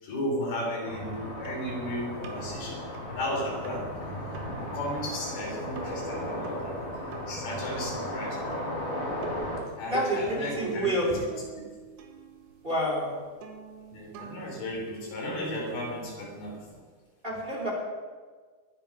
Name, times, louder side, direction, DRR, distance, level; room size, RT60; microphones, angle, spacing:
voice 1, 0.0-2.8 3.1-3.9 4.6-6.9 7.3-8.5 9.8-11.7 13.9-16.6, equal, 85° left, -2 dB, 5.6 m, -35 dB
sound 1, 0.8-9.6, left 1 dB, 30° left, 3.2 m, -35 dB
sound 2, 1.4-16.8, right 3 dB, 80° right, 3.4 m, -45 dB
voice 2, 9.9-11.2 12.6-13.1 17.2-17.7, equal, 15° right, -3 dB, 4.7 m, -28 dB
21.5 x 9.6 x 5.4 m, 1.5 s
omnidirectional pair, 4.3 m